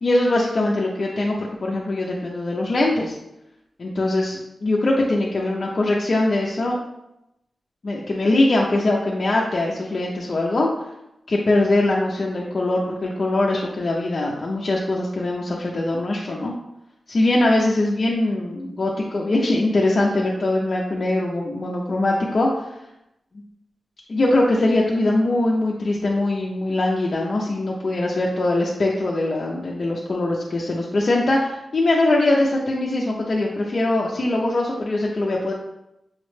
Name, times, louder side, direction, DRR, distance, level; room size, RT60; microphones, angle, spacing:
voice 1, 0.0-3.1 3.8-6.8 7.8-10.7 11.3-16.5 17.1-22.7 24.1-35.5, left 2 dB, 55° left, -3 dB, 0.5 m, -22 dB
5.6 x 2.1 x 3.2 m, 0.87 s
cardioid pair, 70°, 0 cm